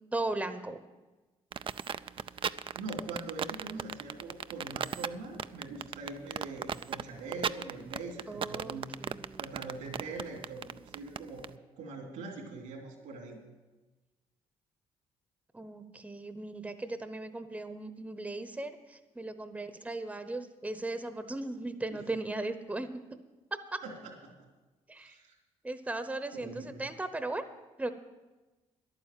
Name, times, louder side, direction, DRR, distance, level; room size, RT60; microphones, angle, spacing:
voice 1, 0.1-0.8 8.3-9.5 15.5-22.9 23.5-23.8 24.9-25.2 25.6-27.4 27.8-27.9, right 2 dB, 10° right, 10 dB, 0.9 m, -37 dB
sound 1, 1.5-11.5, right 7 dB, 45° right, 0.4 m, -35 dB
voice 2, 2.2-9.0 9.4-11.4 11.8-13.4 21.9-22.0 23.8-24.3 25.0-25.3 26.3-26.9, right 3 dB, 90° right, 2 dB, 3.0 m, -43 dB
11.0 x 9.1 x 7.5 m, 1.2 s
supercardioid pair, 65°, 13 cm